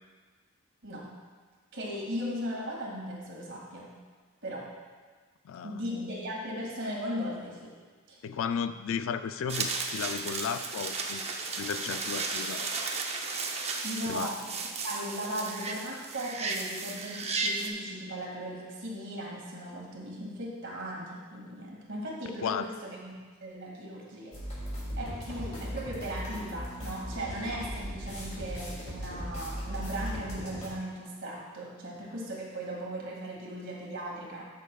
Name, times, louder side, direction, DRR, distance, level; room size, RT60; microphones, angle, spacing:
voice 1, 1.7-3.9 4.4-4.7 5.6-7.7 8.1-8.2 13.8-14.4 14.8-23.1 23.4-24.4 25.0-34.5, equal, 60° right, -3 dB, 2.1 m, -37 dB
voice 2, 5.4-5.8 8.2-11.3 11.6-12.7 14.1-14.3 22.4-22.6, left 7 dB, 65° left, 11 dB, 0.3 m, -34 dB
sound 1, 9.5-17.7, right 4 dB, 30° right, 0.6 m, -34 dB
sound 2, 24.3-30.7, equal, 35° left, 2.5 m, -38 dB
13.0 x 6.6 x 2.3 m, 1.5 s
head